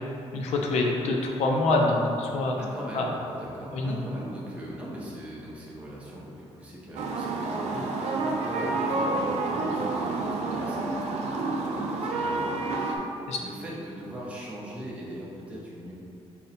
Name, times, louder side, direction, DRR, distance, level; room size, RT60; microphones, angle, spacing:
voice 1, 0.3-2.6 2.9-3.0 3.7-4.0 13.3-13.4, left 2 dB, 75° left, 0 dB, 0.5 m, -25 dB
voice 2, 2.6-13.0 13.4-15.9, right 1 dB, 10° right, -6 dB, 0.7 m, -40 dB
sound 1, 7.0-13.0, right 3 dB, 85° right, 0.4 m, -29 dB
4.0 x 2.1 x 4.1 m, 2.8 s
cardioid pair, 155°, 11 cm